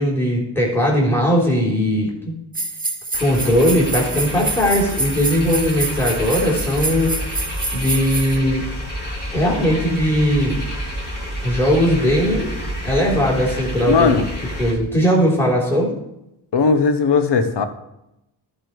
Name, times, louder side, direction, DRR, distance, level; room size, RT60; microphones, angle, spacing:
voice 1, 0.0-2.3 3.2-8.6 9.3-10.6 11.4-12.5 12.8-14.2 14.6-15.9, equal, 5° left, -3 dB, 3.5 m, -19 dB
sound 1, 2.5-8.4, right 2 dB, 15° right, 1.4 m, -27 dB
sound 2, 3.1-14.7, equal, 20° left, 3.7 m, -29 dB
voice 2, 13.9-14.3 16.5-17.7, left 5 dB, 60° left, 10 dB, 1.0 m, -17 dB
11.5 x 4.5 x 4.7 m, 0.87 s
cardioid pair, 60°, 48 cm